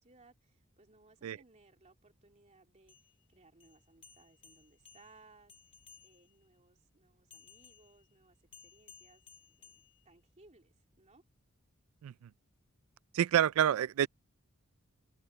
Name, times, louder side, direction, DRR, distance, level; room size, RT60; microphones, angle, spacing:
voice 1, 0.0-5.5 6.0-8.4 8.6-9.2 9.5-11.2, right 3 dB, 35° right, 2.9 m, -64 dB
sound 1, 2.8-6.5 7.3-10.5, left 6 dB, 25° left, 4.1 m, -60 dB
voice 2, 13.1-14.1, right 10 dB, 75° right, 0.3 m, -27 dB
open air
head